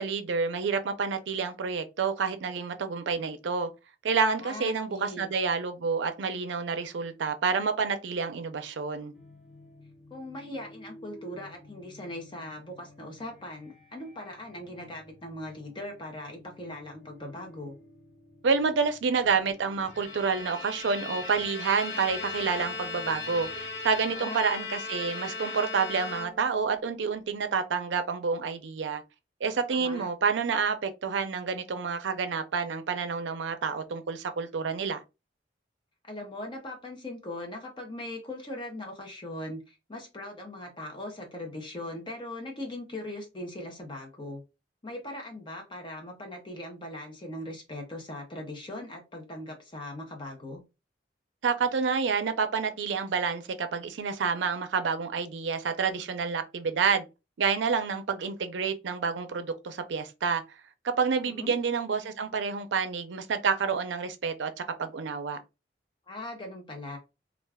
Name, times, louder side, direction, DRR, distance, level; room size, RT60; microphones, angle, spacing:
voice 1, 0.0-3.7 4.0-9.1 18.4-23.5 23.8-29.0 29.4-35.0 51.4-57.0 57.4-60.4 61.0-64.5 64.8-65.4, right 5 dB, 85° right, 0.5 m, -28 dB
voice 2, 4.4-5.3 10.1-17.7 24.1-24.4 29.7-30.1 36.0-44.4 44.8-50.6 61.3-61.5 66.1-67.0, left 1 dB, 25° left, 0.6 m, -40 dB
sound 1, 9.1-24.3, left 1 dB, ahead, 0.9 m, -54 dB
Bowed string instrument, 19.7-26.7, left 4 dB, 80° left, 0.7 m, -37 dB
2.4 x 2.3 x 3.3 m
head